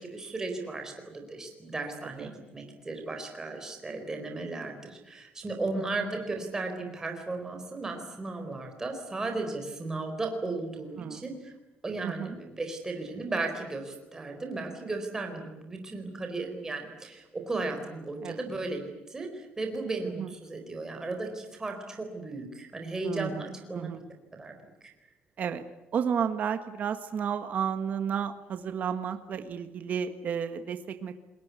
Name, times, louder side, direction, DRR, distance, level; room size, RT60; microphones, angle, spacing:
voice 1, 0.0-11.5 11.8-24.0 24.3-24.7, right 3 dB, 15° right, 3 dB, 4.3 m, -35 dB
voice 2, 12.0-12.3 18.2-18.4 20.0-20.3 23.0-23.5 23.7-24.0 25.4-25.6 25.9-31.2, right 7 dB, 45° right, 8 dB, 1.7 m, -32 dB
29.0 x 22.0 x 8.4 m, 1.0 s
cardioid pair, 165°, 4 cm